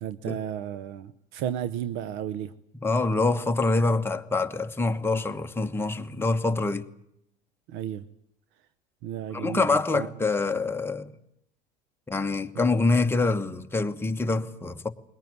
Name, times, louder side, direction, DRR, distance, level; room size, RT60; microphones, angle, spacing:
voice 1, 0.0-2.5 7.7-8.1 9.0-10.1 12.5-12.7, right 10 dB, 70° right, 0.9 m, -33 dB
voice 2, 2.8-6.9 9.3-11.1 12.1-14.9, left 3 dB, 10° left, 1.3 m, -25 dB
22.0 x 18.5 x 9.5 m
supercardioid pair, 115°, 21 cm